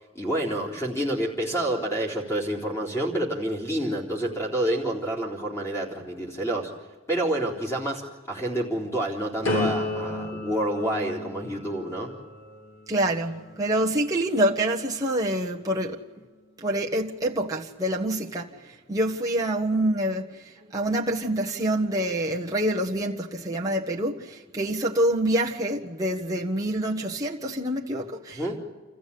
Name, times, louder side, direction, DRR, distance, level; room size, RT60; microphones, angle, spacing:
voice 1, 0.1-6.7 7.1-12.1 28.4-28.6, right 1 dB, 15° left, 4.0 m, -28 dB
sound 1, 9.4-15.3 15.8-16.3, left 2 dB, 85° left, 8.0 m, -34 dB
voice 2, 12.9-16.0 16.6-28.6, right 1 dB, 15° right, 1.3 m, -26 dB
28.0 x 14.5 x 8.5 m
head